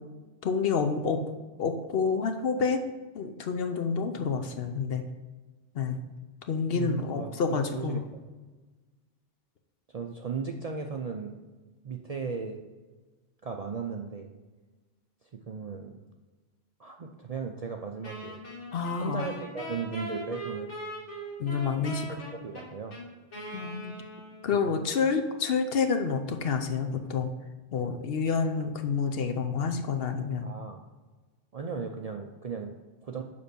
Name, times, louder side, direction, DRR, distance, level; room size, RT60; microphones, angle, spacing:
voice 1, 0.4-1.2 1.6-2.8 3.1-5.0 5.7-6.0 6.5-8.0 18.7-19.3 21.4-22.1 23.5-24.0 24.4-27.3 27.7-30.5, left 5 dB, 60° left, 6 dB, 0.8 m, -28 dB
voice 2, 6.7-8.0 9.9-11.4 11.8-12.6 13.4-14.3 15.3-16.0 16.8-18.4 19.0-20.8 22.4-23.0 24.5-24.6 30.4-30.8 31.5-33.2, right 5 dB, 50° right, 3 dB, 0.5 m, -36 dB
Wind instrument woodwind instrument, 18.0-24.6, right 1 dB, 85° left, 2.4 m, -40 dB
6.8 x 5.2 x 5.2 m, 1.3 s
omnidirectional pair, 1.2 m